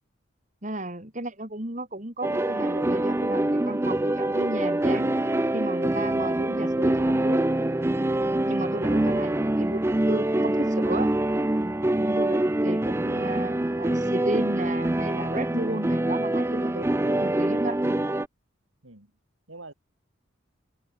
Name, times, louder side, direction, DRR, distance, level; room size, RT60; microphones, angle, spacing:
voice 1, 0.6-5.2 5.5-7.5 8.5-11.1 12.0-17.8, right 1 dB, 35° right, 3.1 m, -34 dB
sound 1, 2.2-18.3, right 1 dB, 10° right, 0.4 m, -25 dB
voice 2, 8.9-9.5 18.8-19.1 19.5-19.7, right 2 dB, 80° right, 4.1 m, -48 dB
open air
head